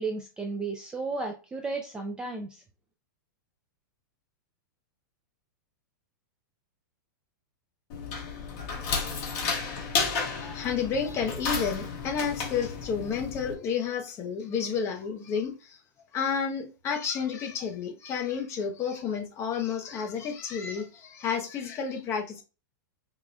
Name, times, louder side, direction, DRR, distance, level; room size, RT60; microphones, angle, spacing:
voice 1, 0.0-2.5, right 3 dB, 10° right, 0.3 m, -33 dB
sound 1, 7.9-13.5, left 5 dB, 45° left, 1.3 m, -32 dB
voice 2, 10.4-15.8 16.1-22.4, left 6 dB, 25° left, 0.7 m, -31 dB
4.6 x 2.2 x 2.6 m
supercardioid pair, 155°, 11 cm